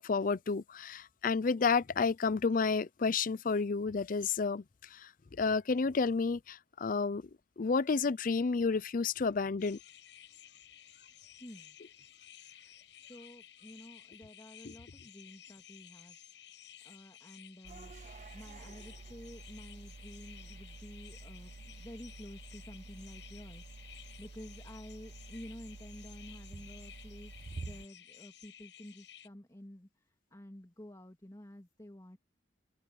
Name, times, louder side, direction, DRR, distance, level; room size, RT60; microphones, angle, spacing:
voice 1, 0.0-4.6 4.9-5.1 5.4-7.2 7.6-9.8, left 4 dB, 50° left, 0.5 m, -30 dB
sound 1, 9.6-29.3, left 10 dB, 75° left, 6.6 m, -55 dB
voice 2, 11.4-11.8 13.0-16.2 16.8-17.9 18.3-32.2, left 1 dB, 20° left, 2.1 m, -51 dB
sound 2, 17.6-27.9, right 3 dB, 40° right, 0.4 m, -49 dB
head